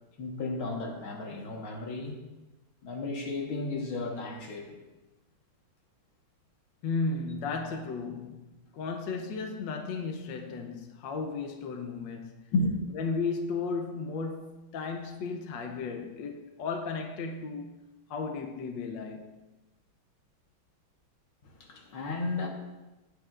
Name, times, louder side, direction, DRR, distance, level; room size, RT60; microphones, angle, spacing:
voice 1, 0.2-2.2 2.8-4.8 12.5-12.7 21.6-22.5, left 2 dB, 85° left, 2.3 m, -33 dB
voice 2, 6.8-12.5 12.9-17.7 18.1-19.4, left 4 dB, 65° left, 1.5 m, -35 dB
15.5 x 9.9 x 2.5 m
omnidirectional pair, 2.2 m